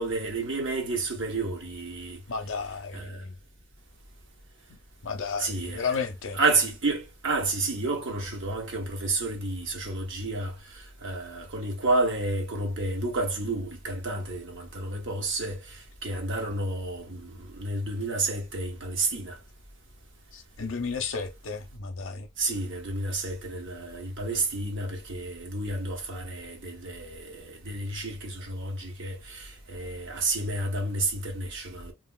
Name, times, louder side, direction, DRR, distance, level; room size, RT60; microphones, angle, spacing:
voice 1, 0.0-2.2 2.9-3.2 5.4-5.9 6.3-19.4 22.4-31.9, right 2 dB, 55° right, 0.8 m, -30 dB
voice 2, 2.3-3.3 4.7-4.8 5.0-6.4 20.3-22.3, left 5 dB, 60° left, 0.6 m, -33 dB
2.9 x 2.5 x 2.4 m
head